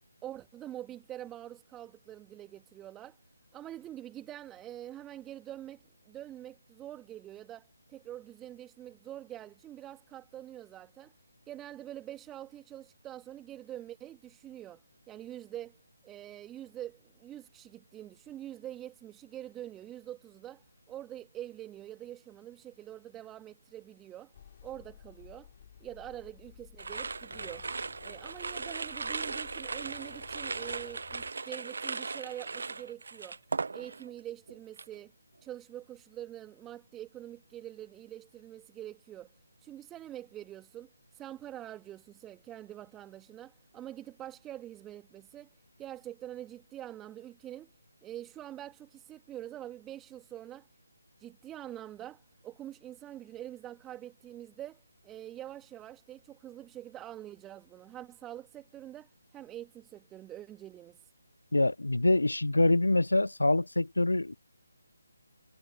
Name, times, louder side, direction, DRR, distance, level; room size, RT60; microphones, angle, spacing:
voice 1, 0.2-3.2 3.5-11.1 11.5-15.8 16.0-24.3 24.6-25.5 25.8-27.7 28.0-33.4 33.7-35.1 35.4-39.3 39.6-45.5 45.8-47.7 48.0-50.7 51.2-61.1, right 12 dB, 10° right, 1.7 m, -45 dB
sound 1, 24.3-31.3, left 9 dB, 30° left, 3.6 m, -54 dB
sound 2, 26.8-34.2 34.5-35.0, right 4 dB, 55° right, 0.5 m, -38 dB
voice 2, 61.5-64.3, left 2 dB, 75° left, 0.5 m, -25 dB
figure-of-eight pair, 150°, 0 cm